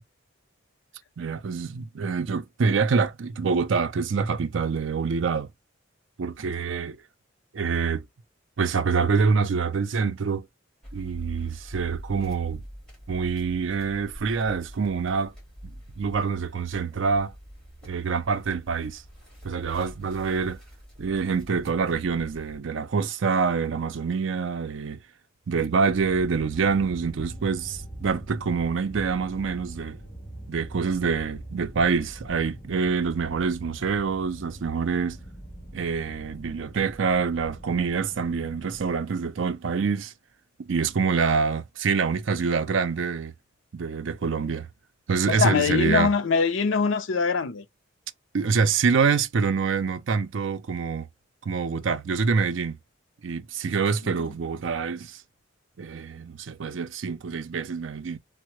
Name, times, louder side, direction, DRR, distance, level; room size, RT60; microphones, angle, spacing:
voice 1, 1.2-5.5 6.2-7.0 7.5-8.0 8.6-10.4 10.9-12.6 13.1-15.3 15.6-17.3 17.8-19.0 19.4-20.6 21.0-25.0 25.5-30.0 30.5-35.2 35.7-40.1 40.6-43.3 43.7-44.7 45.1-46.1 48.3-51.1 51.4-52.8 53.2-55.2 55.8-58.2, right 5 dB, 70° right, 0.5 m, -26 dB
sound 1, 10.8-22.6, equal, 5° left, 1.7 m, -45 dB
sound 2, 25.9-39.0, right 1 dB, 20° left, 1.2 m, -43 dB
voice 2, 45.3-47.7 54.0-54.3, left 5 dB, 75° left, 0.5 m, -23 dB
3.6 x 2.0 x 3.0 m
head